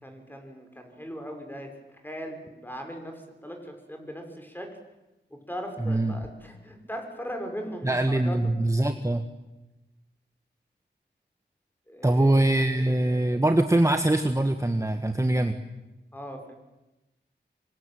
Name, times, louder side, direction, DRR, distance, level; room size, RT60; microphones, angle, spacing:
voice 1, 0.0-4.7 5.5-8.4 11.9-12.9 16.1-16.5, equal, 10° left, 4 dB, 6.1 m, -39 dB
voice 2, 5.8-6.2 7.8-9.2 12.0-15.6, right 1 dB, 15° right, 7 dB, 1.6 m, -23 dB
25.5 x 25.0 x 9.3 m, 1.0 s
wide cardioid pair, 70°, 19 cm